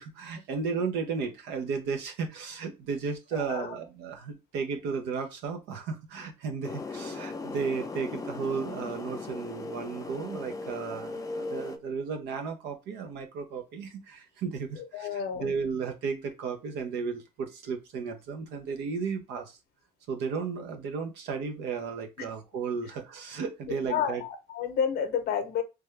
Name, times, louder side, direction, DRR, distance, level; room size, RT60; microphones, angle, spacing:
voice 1, 0.0-19.6 20.1-24.2, right 5 dB, 90° right, 0.8 m, -34 dB
voice 2, 3.3-3.7 14.9-15.5 22.2-22.3 23.9-25.6, left 7 dB, 65° left, 0.7 m, -30 dB
sound 1, 6.6-11.8, left 3 dB, 20° left, 0.5 m, -38 dB
3.3 x 2.3 x 3.2 m
cardioid pair, 110°, 17 cm